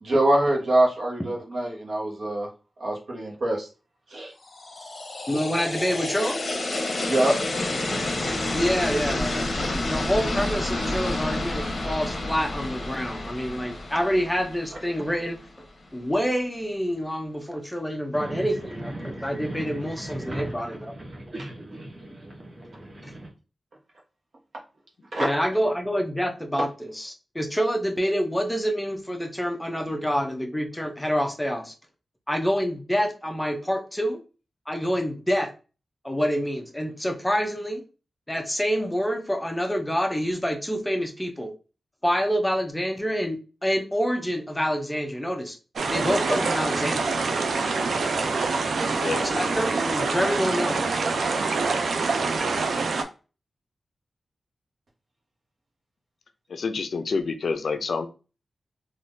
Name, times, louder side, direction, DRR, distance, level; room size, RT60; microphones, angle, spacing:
voice 1, 0.0-2.5 2.8-3.7 4.1-4.3 7.0-7.3 25.1-25.3, right 1 dB, 65° right, -1 dB, 1.1 m, -24 dB
sound 1, 4.5-15.5, left 2 dB, 50° left, 0.9 m, -29 dB
voice 2, 5.3-6.4 8.5-15.7 15.9-20.9 23.0-23.1 25.2-31.7 32.3-34.2 34.7-35.5 36.0-37.8 38.3-41.5 42.0-45.6 45.9-47.2 49.2-50.9, equal, 5° left, 4 dB, 0.5 m, -27 dB
sound 2, 18.1-23.3, right 1 dB, 30° right, 0.8 m, -37 dB
sound 3, 45.8-53.0, right 4 dB, 85° right, 0.4 m, -25 dB
voice 3, 48.9-49.3 56.5-58.1, left 4 dB, 75° left, 8 dB, 0.4 m, -28 dB
3.6 x 2.5 x 2.6 m, 0.33 s
wide cardioid pair, 120°, 0 cm